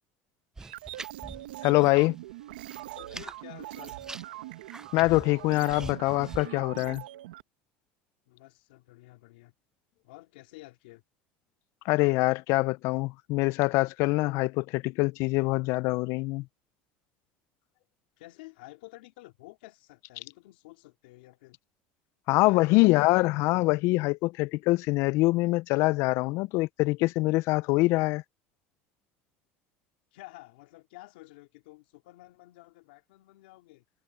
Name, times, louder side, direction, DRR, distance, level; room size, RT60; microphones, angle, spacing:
sound 1, 0.6-2.1 2.4-3.4 3.7-6.5, right 3 dB, 10° right, 0.6 m, -44 dB
sound 2, 0.6-7.4, right 15 dB, 90° right, 1.1 m, -42 dB
voice 1, 1.6-2.1 4.9-7.0 11.9-16.5 22.3-28.2, left 22 dB, 65° left, 0.5 m, -24 dB
voice 2, 3.0-4.0 8.3-9.5 10.0-11.0 18.2-21.6 22.3-23.3 30.1-33.8, left 20 dB, 85° left, 2.4 m, -51 dB
supercardioid pair, 95°, 5 cm